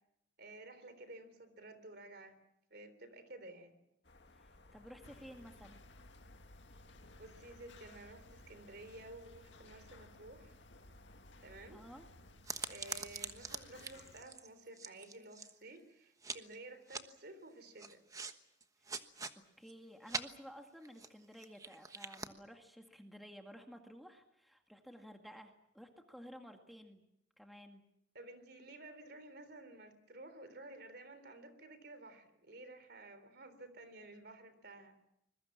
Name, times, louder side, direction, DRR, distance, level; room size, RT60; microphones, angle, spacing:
voice 1, 0.4-2.4 2.7-3.8 7.2-10.6 11.4-11.8 12.7-18.0 28.1-35.0, right 2 dB, 60° right, 11 dB, 3.6 m, -53 dB
sound 1, 4.0-12.4, left 2 dB, 65° left, 2.1 m, -61 dB
voice 2, 4.4-5.8 11.7-12.0 19.4-27.0 27.4-27.8, equal, ahead, 3 dB, 2.0 m, -54 dB
sound 2, 5.0-14.2, left 2 dB, 85° left, 1.9 m, -60 dB
sound 3, 12.4-15.8 16.2-16.6 16.9-17.0 17.8-18.3 18.6-19.3 19.7-19.8 20.1-20.2 20.8-22.3, right 4 dB, 20° right, 1.2 m, -43 dB
25.5 x 22.0 x 7.5 m, 0.79 s
head